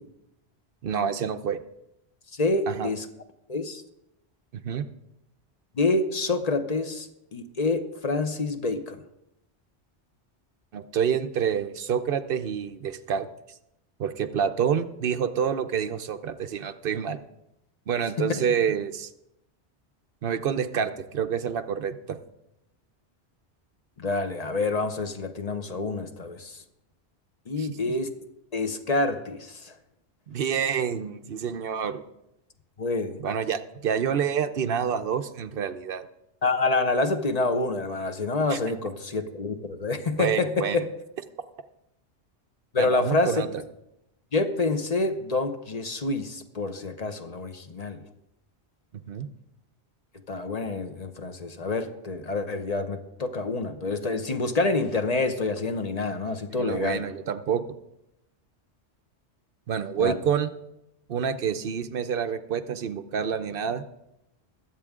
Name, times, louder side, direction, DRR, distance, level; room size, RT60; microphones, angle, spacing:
voice 1, 0.8-1.6 2.7-2.9 4.5-4.9 10.7-13.3 14.0-17.2 17.9-19.1 20.2-22.2 27.6-27.9 30.3-32.0 33.2-36.1 38.5-38.6 40.2-40.8 42.8-43.5 48.9-49.3 56.5-57.6 59.7-60.5 61.1-63.8, right 7 dB, 60° right, 9 dB, 0.9 m, -28 dB
voice 2, 2.3-3.0 3.5-3.8 5.8-9.0 18.2-18.4 24.0-26.6 27.5-28.1 28.5-29.7 32.8-33.2 36.4-40.9 42.7-43.3 44.3-48.0 50.3-57.0 60.0-60.1, left 3 dB, 40° left, 7 dB, 0.9 m, -27 dB
21.5 x 7.7 x 3.7 m, 0.85 s
omnidirectional pair, 1.2 m